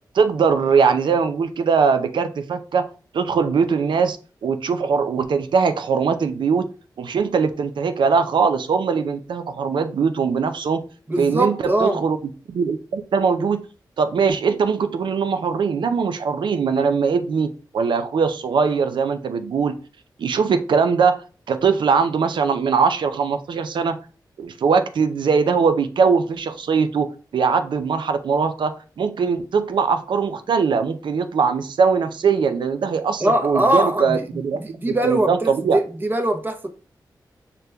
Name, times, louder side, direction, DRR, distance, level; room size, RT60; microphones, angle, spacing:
voice 1, 0.1-2.9 3.1-6.7 7.0-10.8 11.2-12.2 12.5-13.6 14.0-19.8 20.2-21.2 21.5-24.0 24.4-35.8, right 5 dB, 80° right, 0.4 m, -21 dB
voice 2, 11.1-12.0 33.2-34.2 34.5-36.7, right 1 dB, 25° right, 0.7 m, -22 dB
6.6 x 2.2 x 2.2 m
cardioid pair, 55°, 8 cm